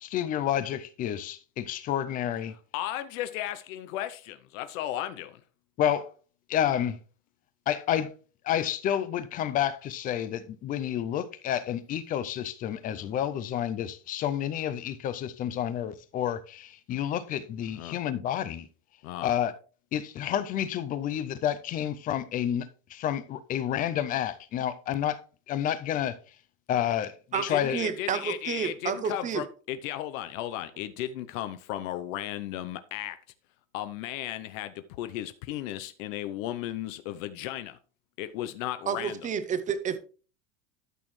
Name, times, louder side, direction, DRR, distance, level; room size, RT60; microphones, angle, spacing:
voice 1, 0.0-2.5 5.8-6.1 6.5-7.0 7.7-8.1 8.4-18.7 19.2-19.5 19.9-25.2 25.5-26.2 26.7-27.1 27.4-27.8, left 10 dB, 25° left, 0.3 m, -29 dB
voice 2, 2.7-5.4 17.7-18.0 19.0-19.3 27.3-33.2 33.7-37.8 38.2-39.2, left 13 dB, 75° left, 0.7 m, -35 dB
voice 3, 27.3-29.4 38.9-40.0, right 7 dB, 20° right, 0.6 m, -30 dB
12.5 x 6.1 x 3.1 m
cardioid pair, 160°, 40 cm